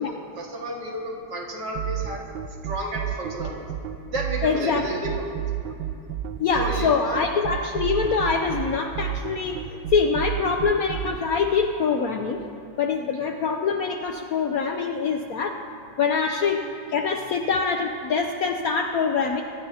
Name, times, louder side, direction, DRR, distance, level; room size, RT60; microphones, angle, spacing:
voice 1, 0.0-2.2 2.6-3.6 4.1-5.3 6.6-7.2 13.2-13.3, right 1 dB, 60° right, -2 dB, 2.6 m, -32 dB
sound 1, 1.8-11.2, right 11 dB, 90° right, 1.4 m, -30 dB
voice 2, 4.4-4.8 6.4-12.4 12.8-15.6 16.0-19.4, left 5 dB, 65° left, 4 dB, 0.9 m, -24 dB
23.5 x 13.0 x 2.8 m, 2.8 s
omnidirectional pair, 2.1 m